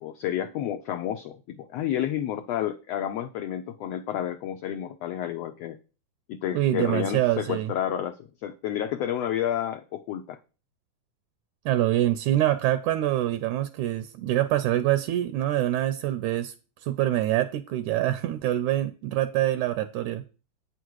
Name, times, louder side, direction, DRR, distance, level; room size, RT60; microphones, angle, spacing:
voice 1, 0.0-5.8 6.3-10.4, left 10 dB, 85° left, 1.4 m, -30 dB
voice 2, 6.5-7.7 11.7-16.5 16.8-20.2, right 13 dB, 80° right, 1.9 m, -25 dB
9.4 x 6.5 x 4.7 m
omnidirectional pair, 3.7 m